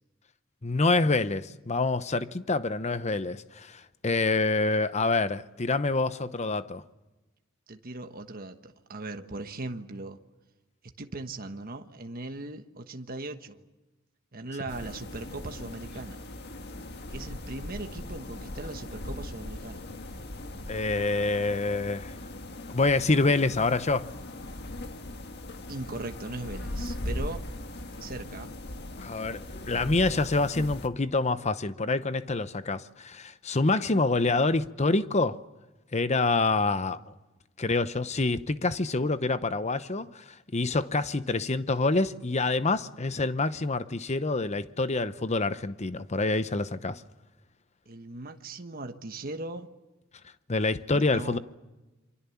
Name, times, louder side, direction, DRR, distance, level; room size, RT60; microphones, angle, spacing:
voice 1, 0.6-6.8 20.7-22.2 22.7-24.1 29.0-35.4 35.9-37.0 37.6-47.0 50.5-51.4, left 3 dB, 35° left, 0.9 m, -27 dB
voice 2, 7.7-10.2 10.8-13.6 14.3-16.2 17.1-19.9 25.7-27.4 28.0-28.5 47.9-49.7 50.9-51.4, right 2 dB, 45° right, 1.3 m, -39 dB
sound 1, 14.7-30.9, left 1 dB, 55° left, 1.7 m, -39 dB
27.5 x 24.5 x 7.2 m
head